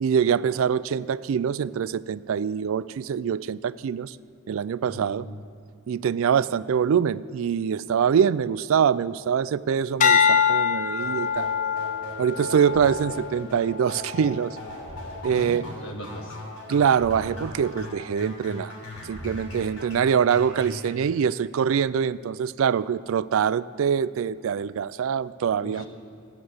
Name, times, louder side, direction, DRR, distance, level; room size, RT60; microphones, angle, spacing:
voice 1, 0.0-4.2 4.5-5.3 5.9-11.5 12.2-14.6 15.2-15.7 16.7-18.7 19.1-25.8, right 7 dB, 65° right, 18 dB, 0.3 m, -24 dB
voice 2, 4.8-5.4 15.3-16.4 25.6-25.9, equal, 60° left, 2 dB, 1.8 m, -39 dB
sound 1, 10.0-14.4 15.0-15.4, left 7 dB, 35° left, 0.6 m, -25 dB
sound 2, 11.0-20.9, left 1 dB, 80° left, 3.4 m, -39 dB
14.0 x 9.8 x 7.9 m, 2.6 s
head